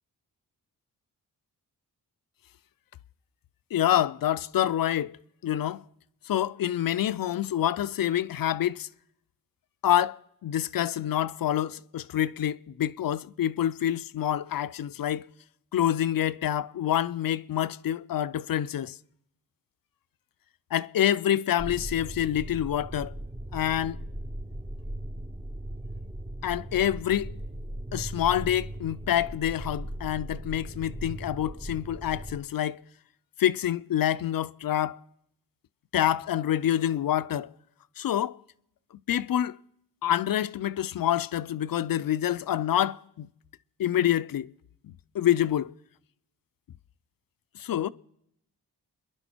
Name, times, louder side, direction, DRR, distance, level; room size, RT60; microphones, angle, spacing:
voice 1, 3.7-5.2 5.4-5.8 6.3-8.9 9.8-15.3 15.7-19.0 20.7-23.1 23.5-24.0 26.4-27.4 27.9-32.8 33.4-35.0 35.9-37.5 38.0-38.4 39.1-39.6 40.0-43.3 43.8-44.5 44.8-45.7 47.5-47.9, left 11 dB, 60° left, 0.5 m, -27 dB
sound 1, 21.6-32.4, right 1 dB, 10° right, 0.6 m, -38 dB
29.5 x 11.0 x 4.4 m
cardioid pair, 95°, 38 cm